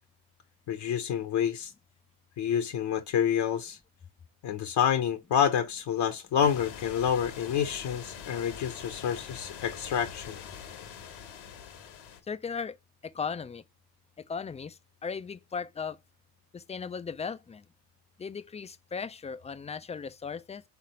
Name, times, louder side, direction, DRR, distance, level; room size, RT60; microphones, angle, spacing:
voice 1, 0.7-1.7 2.4-3.8 4.4-10.4, left 8 dB, 55° left, 0.9 m, -28 dB
sound 1, 6.4-12.2, left 7 dB, 75° left, 1.3 m, -44 dB
voice 2, 12.3-12.8 13.0-13.6 14.2-16.0 16.5-17.7 18.2-20.6, left 5 dB, 15° left, 0.4 m, -37 dB
3.7 x 3.4 x 4.2 m
hypercardioid pair, 60°, 48 cm